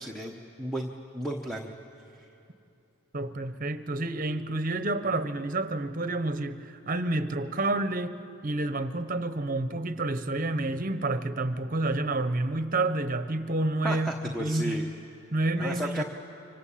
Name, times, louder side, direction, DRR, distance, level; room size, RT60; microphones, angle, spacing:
voice 1, 0.0-1.7 13.8-14.9 15.6-16.0, right 1 dB, ahead, 1 dB, 1.0 m, -33 dB
voice 2, 3.1-14.9 15.3-16.0, right 2 dB, 40° right, 11 dB, 1.0 m, -29 dB
26.5 x 24.5 x 8.6 m, 2.9 s
head